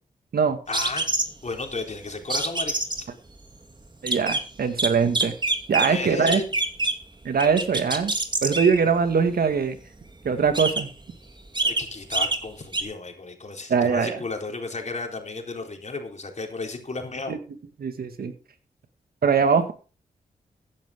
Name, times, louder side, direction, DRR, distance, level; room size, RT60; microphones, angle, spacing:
voice 1, 0.7-1.1 1.4-2.7 5.8-6.5 11.6-17.4, left 3 dB, 45° left, 3 dB, 4.0 m, -33 dB
sound 1, 0.7-1.5 2.3-3.0 3.9-4.4 4.8-5.9 6.3-7.0 7.4-8.8 10.0-10.1 10.5-11.0 11.4-11.8 12.1-12.4 12.7-12.8, right 2 dB, 30° right, 2.6 m, -25 dB
voice 2, 4.0-5.3 5.7-6.4 7.2-8.1 8.4-9.8 10.2-10.9 13.7-14.2 17.3-17.4 17.8-18.3 19.2-19.7, right 6 dB, 70° right, 9 dB, 2.0 m, -22 dB
15.0 x 10.5 x 3.7 m, 0.35 s
cardioid pair, 45°, 16 cm